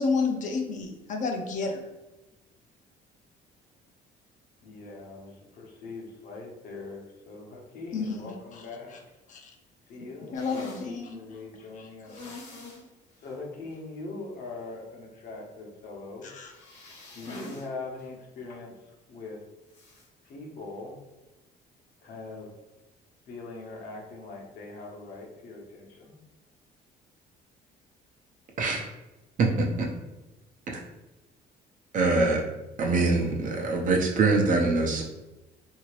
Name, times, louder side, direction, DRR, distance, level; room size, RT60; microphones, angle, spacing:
voice 1, 0.0-1.8 7.9-8.3 9.3-9.5 10.2-11.2 11.8-11.9 12.3-12.4 16.2-16.5, left 4 dB, 50° left, 2 dB, 0.6 m, -30 dB
voice 2, 4.6-8.9 9.9-12.2 13.2-16.3 17.1-18.7 19.1-19.4 20.2-21.0 22.0-22.5 23.3-26.2, left 3 dB, 65° left, -1 dB, 0.9 m, -41 dB
sound 1, 10.3-10.9 12.1-12.8 13.2-13.3 13.7-13.8 16.5-17.7 18.0-18.1 19.7-20.1, left 2 dB, 90° left, 1.1 m, -43 dB
voice 3, 29.4-29.9 31.9-32.4 32.8-35.0, right 3 dB, 50° right, 0 dB, 0.7 m, -24 dB
2.8 x 2.7 x 3.1 m, 1.0 s
cardioid pair, 110°, 17 cm